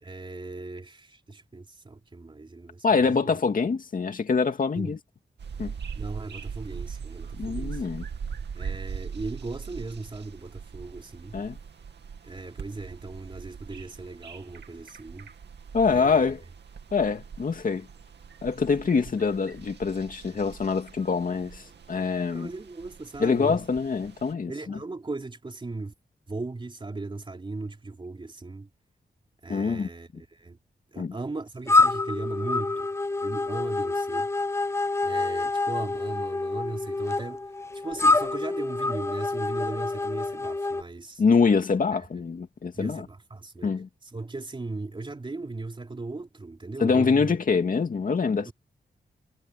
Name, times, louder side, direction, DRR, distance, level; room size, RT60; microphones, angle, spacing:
voice 1, 0.0-3.3 4.7-4.9 5.9-7.8 8.5-11.3 12.2-15.3 15.9-16.2 22.3-23.6 24.5-25.9 26.3-28.7 29.4-30.6 30.9-32.9 33.2-34.3 35.0-37.4 37.8-41.2 41.9-42.2 42.7-43.7 44.0-47.4 48.4-48.5, right 3 dB, 30° right, 3.3 m, -37 dB
voice 2, 2.8-5.0 5.6-5.7 7.4-8.0 11.3-11.6 15.7-16.4 16.9-17.9 18.4-22.5 23.2-24.8 29.5-29.9 31.0-31.1 41.2-43.1 43.6-43.9 46.8-48.5, left 5 dB, 50° left, 2.4 m, -25 dB
sound 1, 5.4-24.3, right 6 dB, 80° right, 2.5 m, -41 dB
sound 2, 31.7-40.8, left 3 dB, 15° left, 0.5 m, -26 dB
wide cardioid pair, 155°, 17 cm